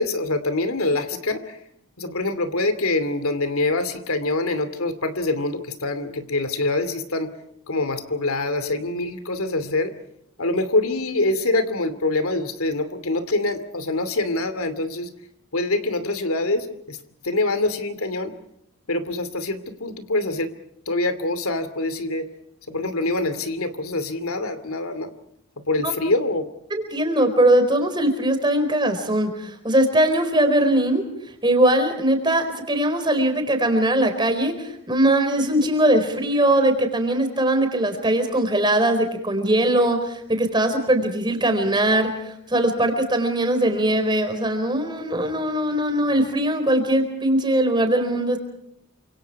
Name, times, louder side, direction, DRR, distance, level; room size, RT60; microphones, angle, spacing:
voice 1, 0.0-1.6 2.0-7.3 7.7-9.9 10.4-15.1 15.5-17.0 17.2-18.3 18.9-20.5 20.9-22.3 22.7-25.1 25.6-26.4, left 2 dB, 85° left, 11 dB, 2.6 m, -25 dB
voice 2, 26.7-31.1 31.4-48.4, right 1 dB, 20° right, 6 dB, 4.4 m, -21 dB
29.0 x 26.5 x 4.7 m, 0.75 s
head